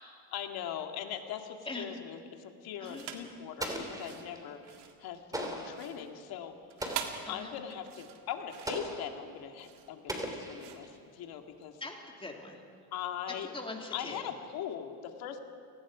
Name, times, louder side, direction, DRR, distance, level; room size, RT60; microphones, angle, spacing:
voice 1, 0.3-6.6 7.3-11.8 12.9-13.5 13.9-15.4, left 9 dB, 65° left, 4 dB, 2.2 m, -40 dB
sound 1, 2.8-3.4 3.9-11.7, right 10 dB, 85° right, 2.0 m, -45 dB
Explosion, 3.6-4.5 5.3-5.9 6.8-7.3 8.7-9.2 10.1-11.0, right 1 dB, 10° right, 3.2 m, -38 dB
voice 2, 11.8-12.6 13.5-14.2, left 2 dB, 15° left, 1 dB, 3.1 m, -42 dB
29.0 x 20.0 x 5.0 m, 2.3 s
cardioid pair, 115°, 39 cm